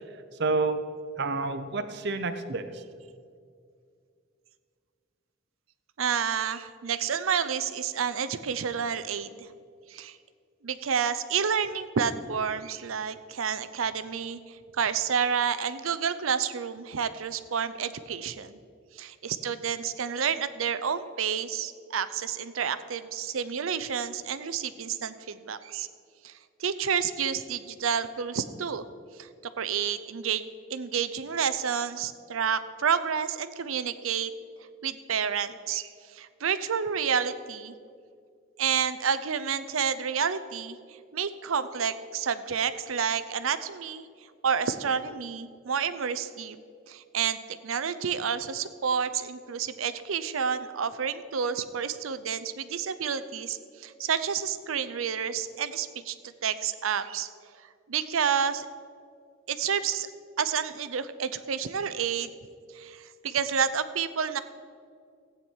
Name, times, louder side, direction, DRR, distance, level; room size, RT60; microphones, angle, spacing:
voice 1, 0.4-0.8 1.2-2.8, right 3 dB, 55° right, 9 dB, 0.8 m, -29 dB
voice 2, 6.0-9.5 9.9-10.2 10.6-18.6 18.9-25.9 26.2-26.3 26.6-28.9 29.2-34.3 34.8-37.7 38.6-40.8 41.1-44.0 44.4-46.6 46.9-56.2 56.4-57.3 57.9-58.7 59.5-60.1 60.4-62.3 62.7-64.4, right 7 dB, 90° right, 13 dB, 0.6 m, -29 dB
15.5 x 8.9 x 4.5 m, 2.2 s
head